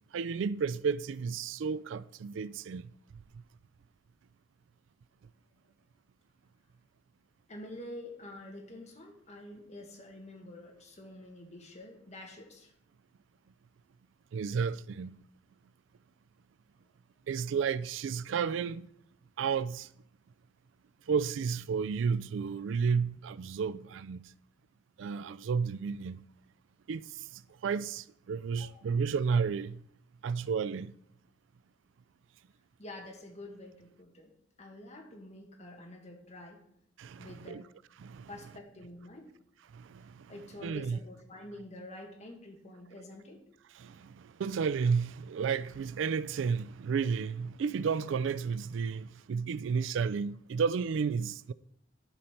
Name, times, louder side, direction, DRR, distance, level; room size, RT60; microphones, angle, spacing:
voice 1, 0.1-2.8 14.3-15.2 17.3-18.9 19.4-19.9 21.1-24.2 25.0-26.2 26.9-27.0 27.3-29.8 30.2-30.9 37.0-37.6 38.0-38.3 39.7-40.3 40.6-41.0 43.8-51.5, right 6 dB, 80° right, 0.3 m, -32 dB
voice 2, 7.5-12.7 28.5-28.9 32.8-34.3 34.6-36.6 37.2-37.6 38.3-39.3 40.3-43.4, left 1 dB, 35° left, 1.8 m, -47 dB
11.5 x 5.3 x 4.4 m
head